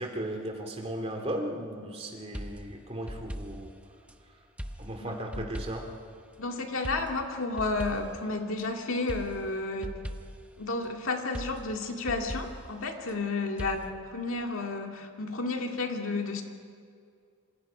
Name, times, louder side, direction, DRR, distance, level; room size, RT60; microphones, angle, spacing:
voice 1, 0.0-3.7 4.8-5.8, right 1 dB, 25° right, 3 dB, 2.6 m, -36 dB
sound 1, 2.3-4.2 4.6-6.0 6.8-8.7 9.1-10.5 11.3-13.2 13.6-13.9, equal, 5° right, 0.9 m, -40 dB
voice 2, 5.0-5.4 6.4-10.0 10.6-16.4, left 3 dB, 60° left, 2 dB, 2.2 m, -32 dB
27.0 x 27.0 x 5.1 m, 2.3 s
head